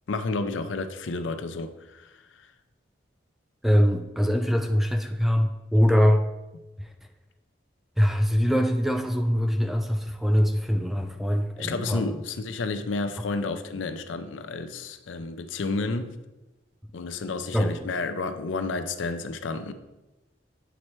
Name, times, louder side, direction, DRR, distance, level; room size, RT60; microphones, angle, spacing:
voice 1, 0.1-2.1 2.4-2.5 11.6-16.1 16.9-19.7, left 3 dB, 85° left, 9 dB, 0.5 m, -31 dB
voice 2, 3.6-6.3 6.8-6.9 8.0-12.1 17.5-17.9, equal, ahead, 5 dB, 0.3 m, -23 dB
8.0 x 4.3 x 3.1 m, 1.1 s
head